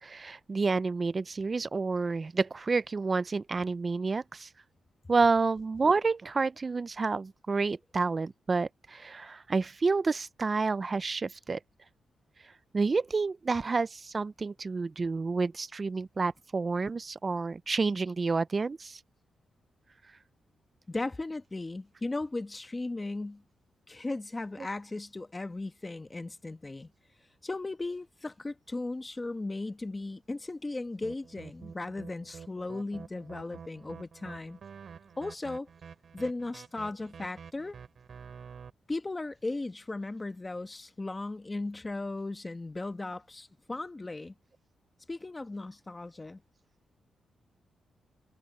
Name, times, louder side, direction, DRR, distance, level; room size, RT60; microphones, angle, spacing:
voice 1, 0.0-4.5 5.1-11.6 12.7-19.0 24.6-24.7, right 4 dB, 30° right, 0.4 m, -29 dB
voice 2, 20.9-23.4 23.9-26.9 27.4-34.6 35.2-35.7 36.1-37.8 38.9-44.3 45.1-46.4, left 2 dB, 20° left, 1.2 m, -36 dB
sound 1, 31.0-38.7, right 6 dB, 55° right, 2.9 m, -48 dB
cardioid pair, 120°, 0 cm